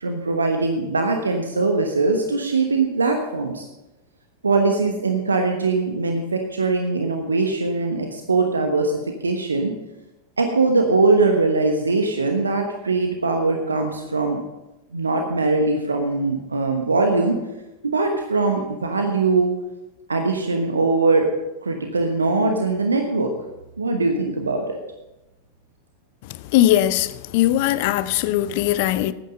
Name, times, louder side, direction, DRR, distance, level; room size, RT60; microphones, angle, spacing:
voice 1, 0.0-3.7 4.4-9.7 10.4-14.4 14.9-17.4 17.8-19.5 20.1-21.3 21.6-23.3 23.8-24.8, right 3 dB, 75° right, 1.1 m, -21 dB
voice 2, 26.5-29.1, left 13 dB, 50° left, 0.5 m, -19 dB
12.5 x 9.3 x 5.3 m
figure-of-eight pair, 90°, 0 cm